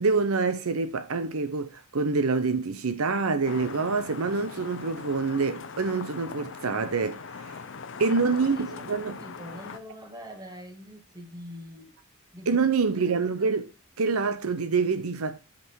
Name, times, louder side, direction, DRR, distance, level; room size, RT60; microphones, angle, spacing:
voice 1, 0.0-7.2 8.0-9.2 12.5-13.7 14.0-15.4, right 4 dB, 85° right, 0.8 m, -26 dB
sound 1, 3.5-9.8, left 5 dB, 60° left, 0.7 m, -41 dB
voice 2, 8.4-8.9 9.2-11.9 12.3-12.5 12.9-13.5, equal, 20° right, 1.8 m, -44 dB
8.1 x 5.3 x 4.6 m
head